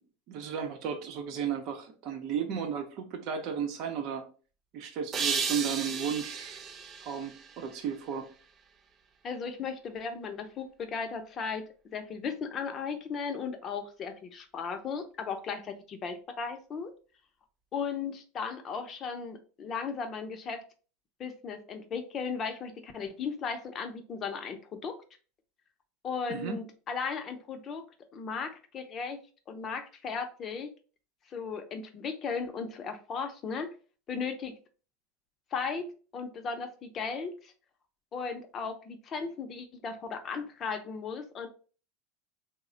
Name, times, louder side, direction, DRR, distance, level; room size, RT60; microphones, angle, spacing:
voice 1, 0.3-4.3 4.7-6.6 7.0-8.3 26.3-26.6, right 7 dB, 55° right, 0.7 m, -34 dB
sound 1, 5.1-8.3, right 5 dB, 30° right, 0.4 m, -34 dB
voice 2, 9.2-16.9 17.7-20.6 21.2-25.0 26.0-27.8 28.1-29.2 29.5-30.7 31.3-33.7 34.1-34.5 35.5-35.9 36.1-37.5 38.1-41.5, left 5 dB, 35° left, 0.6 m, -36 dB
3.2 x 2.1 x 3.7 m
supercardioid pair, 125°, 0 cm